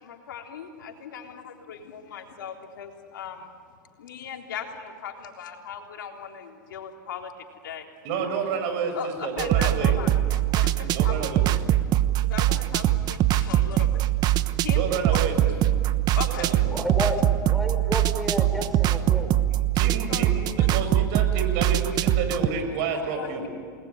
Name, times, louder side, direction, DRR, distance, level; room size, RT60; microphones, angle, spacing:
voice 1, 0.0-3.5 4.0-7.3 7.6-7.9 8.9-11.1 12.3-13.9 14.6-14.8 15.1-15.2 16.1-16.5 20.1-20.2 20.6-20.7 23.1-23.5, left 7 dB, 80° left, 2 dB, 3.7 m, -38 dB
voice 2, 8.0-10.0 10.9-11.5 14.7-15.7 16.2-16.7 19.7-23.5, right 5 dB, 60° right, 6 dB, 6.5 m, -30 dB
sound 1, 9.4-22.5, right 13 dB, 40° right, 1.0 m, -23 dB
voice 3, 16.6-19.3, equal, ahead, 3 dB, 4.9 m, -31 dB
29.0 x 20.0 x 9.6 m, 2.2 s
hypercardioid pair, 110°, 11 cm